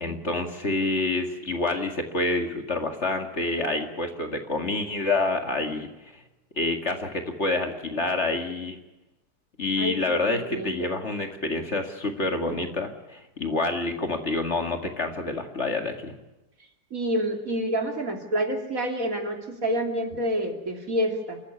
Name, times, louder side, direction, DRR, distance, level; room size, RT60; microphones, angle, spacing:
voice 1, 0.0-6.2 6.6-8.8 9.6-16.1, left 2 dB, 45° left, 5 dB, 2.3 m, -28 dB
voice 2, 9.8-10.9 16.9-21.4, right 1 dB, 55° right, 3 dB, 3.2 m, -28 dB
28.0 x 14.5 x 9.7 m, 1.0 s
omnidirectional pair, 1.8 m